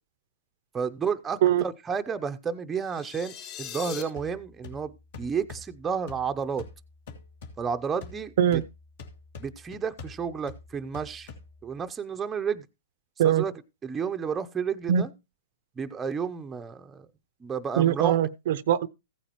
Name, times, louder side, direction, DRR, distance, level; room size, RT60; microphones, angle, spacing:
voice 1, 0.7-6.7 7.6-8.6 9.4-11.3 11.6-12.6 13.2-13.5 13.8-15.1 15.8-17.1 17.4-18.3, right 6 dB, 15° right, 0.6 m, -31 dB
sound 1, 2.8-4.0, left 10 dB, 35° left, 3.8 m, -39 dB
sound 2, 4.2-11.9, left 4 dB, 60° left, 2.3 m, -46 dB
voice 2, 17.8-18.9, right 10 dB, 60° right, 0.6 m, -22 dB
15.0 x 9.0 x 3.0 m
hypercardioid pair, 145°, 0 cm